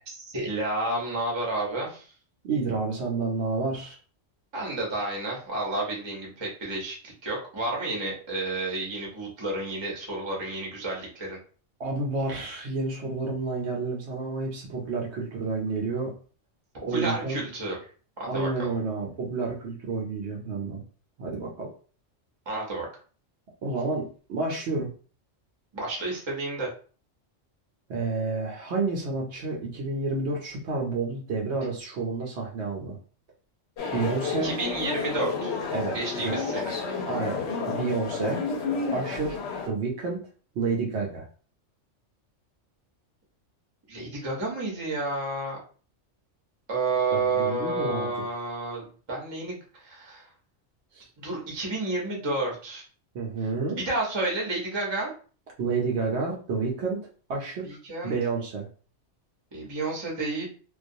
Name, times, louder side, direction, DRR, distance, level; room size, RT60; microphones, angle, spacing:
voice 1, 0.1-2.1 4.5-11.4 16.9-17.8 18.2-18.8 22.5-22.9 25.7-26.7 34.4-35.5 35.9-36.8 43.9-45.6 46.7-50.3 51.2-52.8 53.7-55.1 57.6-58.2 59.5-60.4, right 2 dB, 25° right, -2 dB, 0.7 m, -30 dB
voice 2, 2.4-4.0 11.8-16.1 16.8-17.4 18.3-20.8 21.2-21.7 23.6-24.9 27.9-33.0 33.9-34.5 35.7-36.4 37.1-38.4 38.9-39.4 39.7-40.2 40.6-41.2 47.1-48.1 50.9-51.1 53.1-53.8 55.6-57.0 57.3-57.8 58.0-58.7, right 4 dB, 65° right, -1 dB, 0.9 m, -30 dB
sound 1, 33.8-39.7, left 4 dB, 70° left, 0.8 m, -31 dB
2.3 x 2.3 x 2.6 m, 0.40 s
omnidirectional pair, 1.3 m